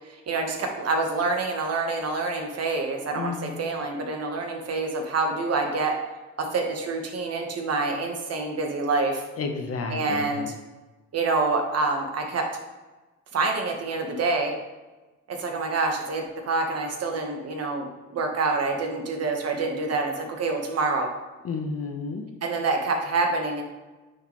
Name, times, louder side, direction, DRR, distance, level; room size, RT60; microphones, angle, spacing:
voice 1, 0.3-5.9 6.4-9.2 9.9-10.5 11.1-12.5 13.3-14.5 15.3-21.1 22.4-23.6, right 3 dB, 55° right, 3 dB, 1.3 m, -27 dB
voice 2, 3.1-3.6 9.4-10.5 21.4-22.3, left 4 dB, 50° left, 5 dB, 1.0 m, -31 dB
9.1 x 4.0 x 3.1 m, 1.2 s
cardioid pair, 90°, 30 cm